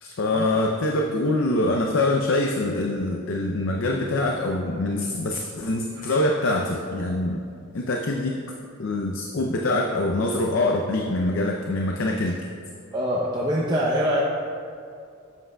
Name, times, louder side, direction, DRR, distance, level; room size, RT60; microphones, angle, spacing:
voice 1, 0.0-7.4 7.7-8.4 8.8-12.4, left 2 dB, 60° left, 1 dB, 0.5 m, -24 dB
voice 2, 12.9-14.2, equal, 20° right, -5 dB, 0.6 m, -24 dB
11.0 x 7.5 x 2.3 m, 2.4 s
head